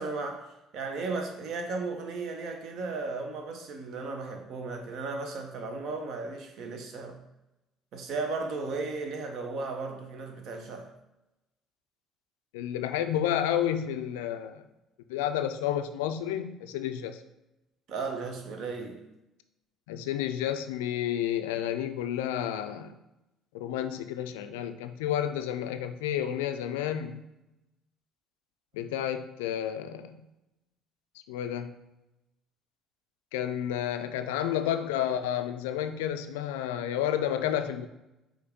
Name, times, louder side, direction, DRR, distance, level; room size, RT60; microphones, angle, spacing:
voice 1, 0.0-7.2 7.9-10.9 17.9-19.1, right 3 dB, 60° right, 0.8 m, -35 dB
voice 2, 12.5-14.6 15.1-17.2 19.9-23.0 23.5-27.3 28.7-30.3 31.3-31.8 33.3-37.9, left 10 dB, 75° left, 0.3 m, -31 dB
5.3 x 2.5 x 3.8 m
hypercardioid pair, 55°, 0 cm